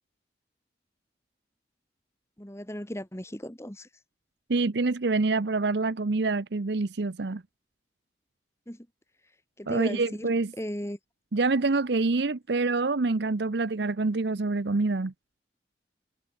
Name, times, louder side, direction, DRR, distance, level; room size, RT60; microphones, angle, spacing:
voice 1, 2.4-3.9 8.7-8.9 9.6-10.3 10.6-11.0, equal, 15° left, 1.8 m, -36 dB
voice 2, 4.5-7.4 9.7-10.5 11.3-15.1, right 3 dB, 65° right, 0.7 m, -26 dB
head